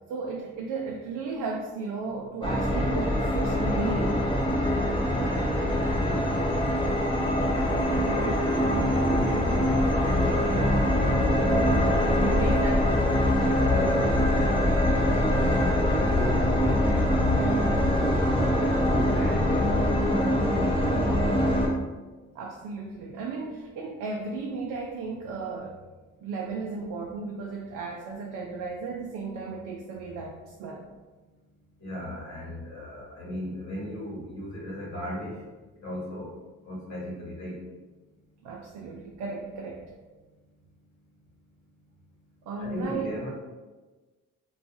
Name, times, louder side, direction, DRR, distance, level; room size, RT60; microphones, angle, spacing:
voice 1, 0.1-4.2 11.5-13.3 22.3-25.8 26.2-30.8 38.4-39.8 42.5-43.1, right 4 dB, 80° right, -1 dB, 0.5 m, -35 dB
sound 1, 2.4-21.7, left 1 dB, 20° left, 0.5 m, -23 dB
voice 2, 5.1-6.9 7.5-10.5 13.7-14.1 15.4-16.5 17.0-20.9 31.8-35.3 35.8-36.3 36.6-37.6 42.6-43.3, equal, 65° left, -4 dB, 1.1 m, -36 dB
2.5 x 2.3 x 2.8 m, 1.2 s
cardioid pair, 90°, 30 cm